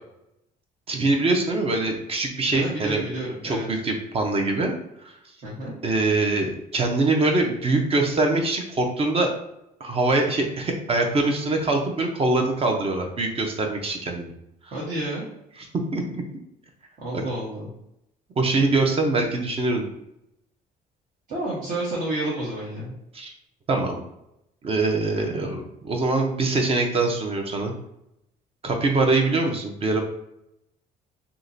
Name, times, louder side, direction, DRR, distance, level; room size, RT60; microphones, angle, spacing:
voice 1, 0.9-3.0 3.4-4.7 5.0-5.1 5.8-9.3 9.8-14.3 14.6-14.7 15.9-16.2 17.1-17.2 18.4-19.9 23.1-23.3 23.7-24.0 24.6-27.7 28.6-30.0, right 2 dB, 35° right, 3 dB, 0.7 m, -23 dB
voice 2, 2.5-3.7 5.4-5.8 14.7-15.3 17.0-17.7 21.3-22.9, right 1 dB, 55° right, -6 dB, 1.2 m, -30 dB
3.7 x 2.9 x 2.7 m, 0.82 s
cardioid pair, 110°, 17 cm